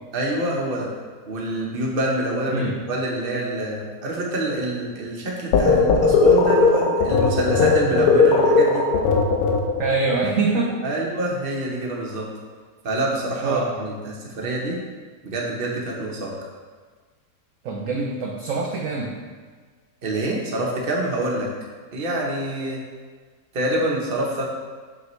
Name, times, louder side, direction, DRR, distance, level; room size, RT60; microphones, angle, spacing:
voice 1, 0.1-0.9 1.3-8.8 10.8-12.3 12.8-14.8 15.2-16.3 20.0-21.5 21.9-22.8 23.5-24.4, right 1 dB, 40° right, -2 dB, 1.0 m, -26 dB
voice 2, 2.5-2.8 9.8-10.8 13.4-13.7 17.6-19.2, right 3 dB, 65° right, 0 dB, 0.8 m, -24 dB
sound 1, 5.5-10.0, left 4 dB, 70° left, 1.1 m, -17 dB
5.9 x 5.5 x 3.1 m, 1.5 s
omnidirectional pair, 1.7 m